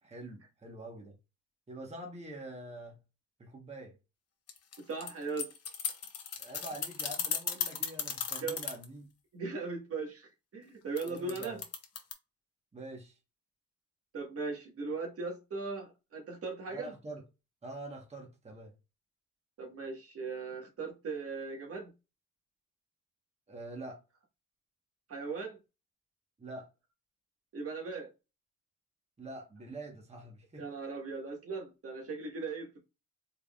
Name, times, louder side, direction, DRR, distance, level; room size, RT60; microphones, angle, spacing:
voice 1, 0.0-1.2 1.7-3.0 3.4-4.0 6.4-9.1 11.1-11.6 12.7-13.2 16.7-17.2 17.6-18.7 23.5-24.0 26.4-26.7 29.2-30.7, right 2 dB, 20° right, 1.2 m, -45 dB
sound 1, 4.5-8.8 11.0-12.1, left 7 dB, 55° left, 1.0 m, -35 dB
voice 2, 4.9-5.5 8.4-8.6 9.3-11.6 14.1-16.9 19.6-21.9 25.1-25.6 27.5-28.1 30.6-32.8, right 4 dB, 50° right, 1.5 m, -38 dB
4.5 x 3.5 x 2.4 m
cardioid pair, 90°, 30 cm